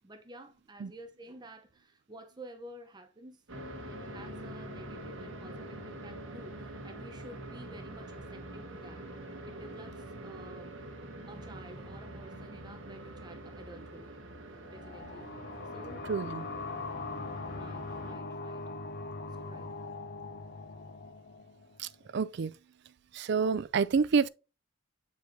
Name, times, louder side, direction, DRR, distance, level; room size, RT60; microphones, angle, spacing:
voice 1, 0.0-3.4 3.8-9.1 9.4-10.7 11.3-14.1 14.7-15.5 15.7-16.0 17.5-18.8 19.3-19.8, right 1 dB, 20° right, 0.7 m, -51 dB
sound 1, 3.5-18.1, right 1 dB, 70° right, 1.3 m, -45 dB
sound 2, 14.6-22.1, left 3 dB, 50° left, 0.5 m, -41 dB
voice 2, 16.1-16.5 21.8-22.5 23.1-24.3, right 5 dB, 55° right, 0.4 m, -28 dB
8.1 x 4.7 x 2.7 m
head